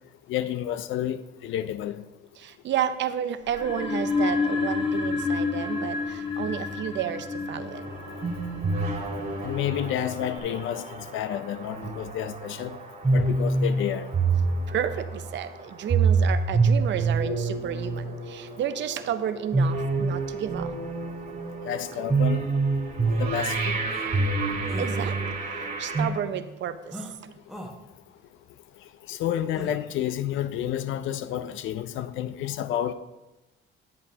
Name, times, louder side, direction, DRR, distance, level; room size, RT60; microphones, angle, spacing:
voice 1, 0.3-2.0 9.4-12.8 13.1-14.1 21.6-22.5 23.2-23.8 29.1-32.9, left 11 dB, 85° left, 0.5 m, -30 dB
voice 2, 2.4-7.8 14.7-20.7 24.8-25.4 25.8-27.4, right 9 dB, 65° right, 0.6 m, -31 dB
sound 1, 3.5-10.4, left 4 dB, 25° left, 1.2 m, -30 dB
sound 2, 7.7-26.1, right 3 dB, 50° right, 2.1 m, -27 dB
sound 3, 23.1-23.2 23.9-24.1 24.7-25.0 26.9-27.1 27.5-27.7 29.6-29.8, equal, ahead, 1.1 m, -39 dB
9.7 x 9.4 x 2.8 m
cardioid pair, 90°, 20 cm